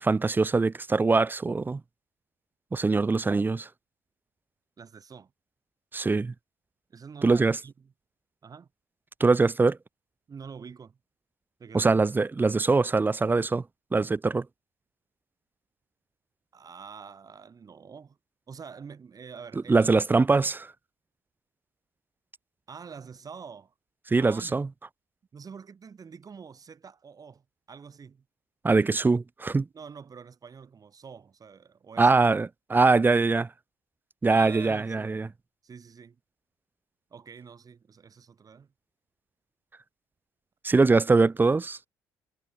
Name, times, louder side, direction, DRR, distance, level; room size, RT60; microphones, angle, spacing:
voice 1, 0.0-1.8 2.7-3.7 5.9-6.3 7.2-7.6 9.2-9.8 11.7-13.6 13.9-14.5 19.7-20.7 24.1-24.7 28.6-29.7 32.0-33.5 34.2-35.3 40.6-41.8, right 3 dB, 20° right, 0.6 m, -22 dB
voice 2, 4.8-5.3 6.9-7.7 8.4-8.7 10.3-11.0 11.6-11.9 16.5-18.2 18.5-19.9 22.7-23.7 24.2-24.6 25.3-28.2 29.7-32.2 34.3-35.1 35.6-36.2 37.1-38.7, right 6 dB, 40° right, 6.4 m, -46 dB
hypercardioid pair, 60°, 9 cm